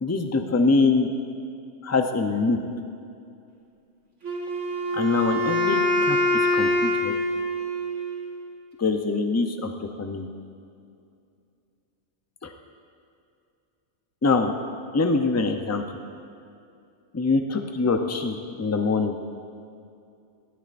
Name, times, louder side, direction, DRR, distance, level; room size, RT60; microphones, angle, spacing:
voice 1, 0.0-1.1 1.8-2.6 4.9-6.2 6.5-7.1 8.8-10.3 12.4-12.5 14.2-14.5 14.9-15.8 17.1-19.2, left 3 dB, 20° left, 5 dB, 0.5 m, -24 dB
Wind instrument woodwind instrument, 4.2-8.3, left 1 dB, 85° right, 1.9 m, -24 dB
18.0 x 13.0 x 2.6 m, 2.5 s
omnidirectional pair, 1.2 m